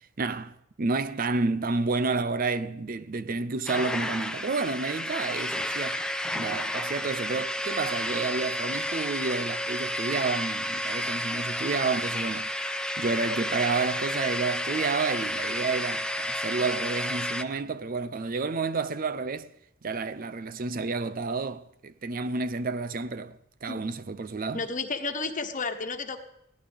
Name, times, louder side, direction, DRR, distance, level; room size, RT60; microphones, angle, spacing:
voice 1, 0.2-6.0 6.4-19.5 19.8-24.7, right 4 dB, 45° right, 0.5 m, -30 dB
sound 1, 3.7-17.4, left 1 dB, 5° left, 0.6 m, -31 dB
voice 2, 24.5-26.2, left 4 dB, 40° left, 1.3 m, -32 dB
21.5 x 16.0 x 3.5 m
head